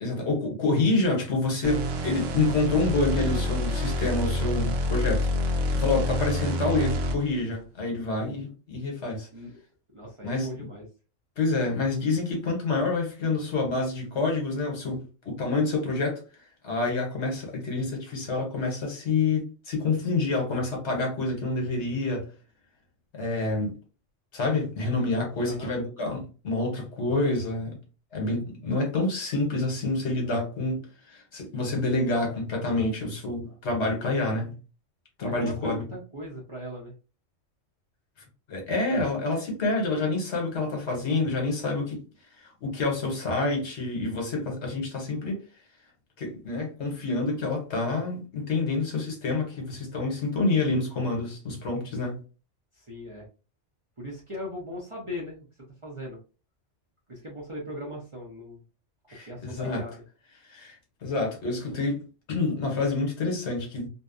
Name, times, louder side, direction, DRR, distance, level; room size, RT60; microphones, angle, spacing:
voice 1, 0.0-9.3 10.2-10.5 11.4-16.2 16.6-22.3 23.1-23.7 24.3-27.8 28.1-34.5 35.2-35.8 38.5-42.0 42.4-45.4 46.2-52.2 59.1-59.8 60.4-60.8 61.0-63.9, left 3 dB, 65° left, 1.2 m, -28 dB
sound 1, 1.6-7.4, left 1 dB, 80° right, 0.9 m, -28 dB
voice 2, 9.9-10.8 25.4-25.7 35.4-36.9 52.7-53.3 54.0-55.5 55.8-56.2 57.1-58.6 59.2-60.0, left 1 dB, 35° right, 0.6 m, -38 dB
2.7 x 2.2 x 2.4 m
omnidirectional pair, 1.3 m